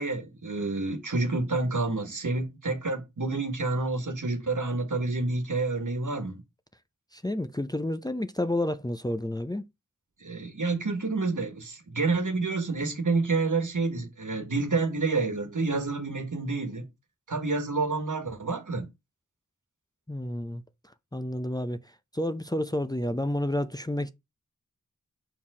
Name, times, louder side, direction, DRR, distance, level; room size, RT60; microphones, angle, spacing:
voice 1, 0.0-6.4 10.2-16.8 17.3-18.9, right 3 dB, 75° right, 1.5 m, -29 dB
voice 2, 7.1-9.7 20.1-20.6 21.1-21.8 22.1-24.1, left 1 dB, 15° left, 0.5 m, -30 dB
5.6 x 4.6 x 4.8 m
wide cardioid pair, 55°, 31 cm